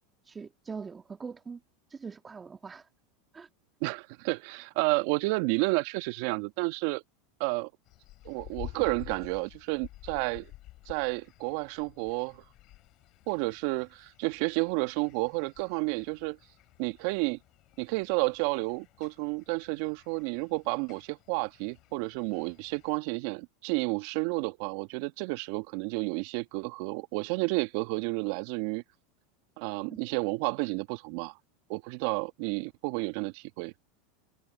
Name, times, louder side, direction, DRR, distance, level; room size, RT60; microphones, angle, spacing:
voice 1, 0.2-1.6 1.9-2.9 3.3-3.5 8.7-8.8 29.9-30.0, right 5 dB, 20° right, 1.6 m, -42 dB
voice 2, 3.8-7.0 7.4-7.7 8.2-10.5 10.9-12.4 13.3-16.4 16.8-17.4 17.8-28.8 29.6-31.3 31.7-33.7, right 26 dB, 60° right, 1.6 m, -31 dB
sound 1, 7.9-23.0, left 17 dB, 50° left, 6.9 m, -51 dB
hypercardioid pair, 100°, 0 cm